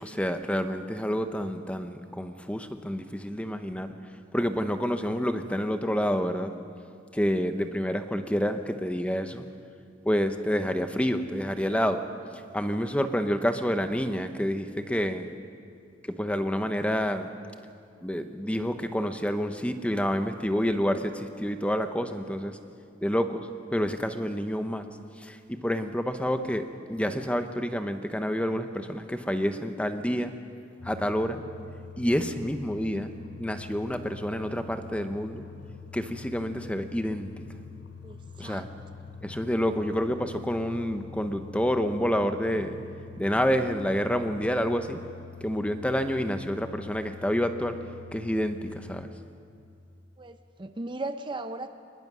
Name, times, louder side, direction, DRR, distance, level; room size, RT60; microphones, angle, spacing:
voice 1, 0.0-3.9 4.3-6.5 7.1-9.4 10.1-12.0 12.5-15.3 16.2-17.3 18.0-22.6 23.0-24.9 25.2-30.3 30.8-31.4 32.0-33.1 33.4-35.4 35.9-37.3 38.4-38.7 39.2-42.8 43.2-45.0 45.4-47.8 48.1-49.1, equal, 5° left, 8 dB, 0.8 m, -28 dB
sound 1, 30.8-49.1, left 5 dB, 75° left, 1.2 m, -45 dB
voice 2, 38.0-38.6 50.2-51.7, right 2 dB, 25° right, 9 dB, 0.6 m, -37 dB
24.5 x 20.5 x 6.1 m, 2.4 s
head